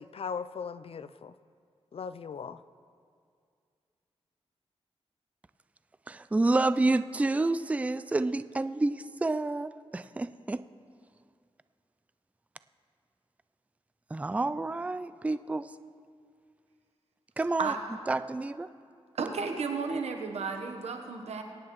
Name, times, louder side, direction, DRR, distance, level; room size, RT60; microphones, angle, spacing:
voice 1, 0.0-1.3 1.9-2.6, left 6 dB, 60° left, 14 dB, 0.4 m, -38 dB
voice 2, 6.1-10.6 14.1-15.7 17.4-17.7 18.1-18.7, right 2 dB, 15° right, 13 dB, 0.3 m, -29 dB
voice 3, 19.1-21.4, right 5 dB, 80° right, 4 dB, 1.1 m, -33 dB
23.0 x 9.7 x 3.1 m, 2.3 s
cardioid pair, 65°, 11 cm